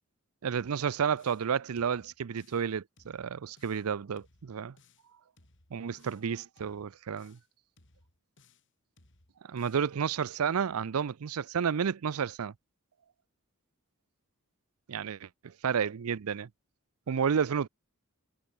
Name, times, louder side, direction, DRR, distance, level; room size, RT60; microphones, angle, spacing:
voice 1, 0.4-4.8 5.7-7.4 9.5-12.5 14.9-15.2 15.6-16.5 17.1-17.7, right 7 dB, 70° right, 0.5 m, -31 dB
sound 1, 0.6-1.5 1.8-2.7 3.0-3.9 4.2-5.1 5.4-6.3 6.6-7.5 7.8-8.7 9.0-9.9, left 2 dB, 55° left, 4.5 m, -64 dB
head